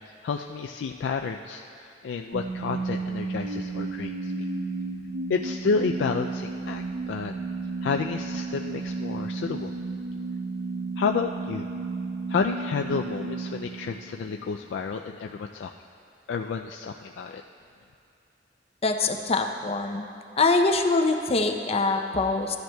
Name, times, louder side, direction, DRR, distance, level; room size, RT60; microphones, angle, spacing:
voice 1, 0.2-1.6 2.0-4.5 5.3-7.3 7.8-9.7 11.0-11.7 12.3-15.7 16.3-17.4, left 5 dB, 90° left, 3 dB, 0.3 m, -30 dB
sound 1, 2.3-14.5, right 3 dB, 70° right, 0.5 m, -33 dB
voice 2, 18.8-20.1 20.4-22.6, left 3 dB, 35° left, 5 dB, 0.6 m, -24 dB
14.0 x 10.5 x 2.3 m, 2.7 s
head